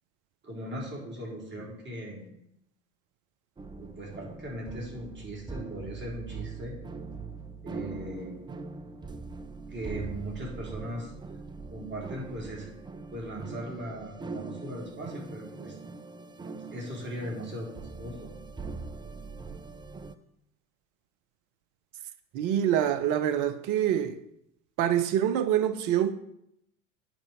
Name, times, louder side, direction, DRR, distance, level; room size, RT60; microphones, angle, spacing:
voice 1, 0.4-2.3 3.8-6.7 7.6-8.4 9.7-11.1 11.7-12.7 13.1-15.8 16.7-18.3, right 1 dB, 25° right, 4.2 m, -39 dB
sound 1, 3.6-20.1, right 4 dB, 10° right, 0.5 m, -42 dB
voice 2, 22.3-24.2 24.8-26.1, right 10 dB, 45° right, 1.0 m, -25 dB
9.0 x 5.3 x 6.9 m
figure-of-eight pair, 75°, 41 cm